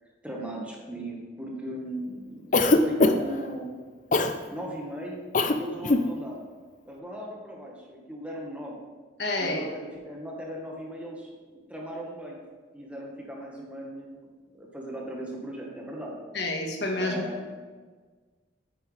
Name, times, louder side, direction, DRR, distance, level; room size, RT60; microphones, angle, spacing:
voice 1, 0.2-3.7 4.5-6.5 6.9-8.8 9.4-12.4 12.7-14.3 14.5-16.1 17.0-17.5, right 1 dB, 5° right, -2 dB, 1.4 m, -38 dB
Cough, 2.5-3.4 4.1-4.4 5.3-5.6 5.8-6.1, left 2 dB, 40° left, 0.5 m, -21 dB
voice 2, 9.2-9.6 16.3-17.2, left 2 dB, 60° left, 1 dB, 1.4 m, -28 dB
9.3 x 8.8 x 3.3 m, 1.4 s
head